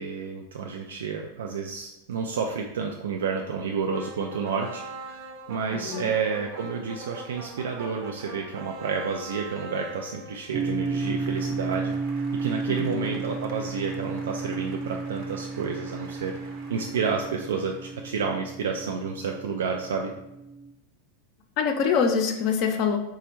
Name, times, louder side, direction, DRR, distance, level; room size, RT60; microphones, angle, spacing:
voice 1, 0.0-4.8 5.1-5.2 5.5-11.9 12.4-16.4 16.7-20.1, right 5 dB, 85° right, 2 dB, 0.4 m, -30 dB
sound 1, 3.9-18.1, right 3 dB, 55° right, 0.7 m, -44 dB
voice 2, 5.7-6.0 12.7-13.2 21.6-23.0, left 6 dB, 50° left, 3 dB, 0.6 m, -25 dB
sound 2, 10.5-20.7, right 4 dB, 15° right, 0.5 m, -33 dB
4.1 x 2.3 x 4.4 m, 0.91 s
hypercardioid pair, 110°, 0 cm